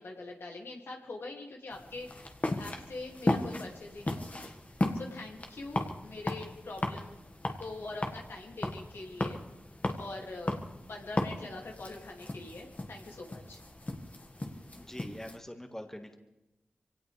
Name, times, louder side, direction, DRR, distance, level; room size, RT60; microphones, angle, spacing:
voice 1, 0.0-4.5 4.8-7.2 7.6-9.4 10.0-10.6 10.9-13.6, left 2 dB, 75° left, 0 dB, 2.5 m, -43 dB
sound 1, 1.7-15.4, left 2 dB, 40° left, 1.8 m, -36 dB
voice 2, 14.7-16.2, left 1 dB, 10° left, 5 dB, 1.8 m, -44 dB
24.0 x 17.5 x 3.4 m, 0.99 s
cardioid pair, 40°, 4 cm